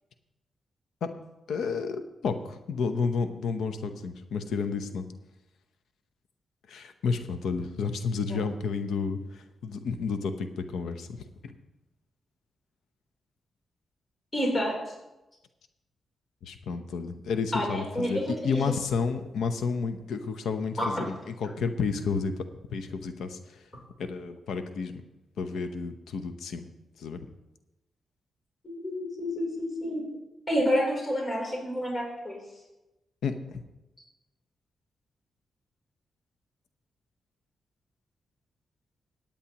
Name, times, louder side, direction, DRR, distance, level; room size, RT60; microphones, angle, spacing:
voice 1, 1.5-5.0 6.7-11.1 11.4-11.5 16.4-22.5 22.7-23.6 24.0-24.9 25.4-26.7 27.0-27.2 33.2-33.6, left 5 dB, 85° left, 9 dB, 0.8 m, -31 dB
voice 2, 14.3-14.7 17.5-18.7 20.8-20.9 28.7-30.0 30.5-32.4, equal, 35° left, -2 dB, 3.5 m, -29 dB
18.0 x 8.6 x 3.0 m, 1.0 s
cardioid pair, 65°, 0 cm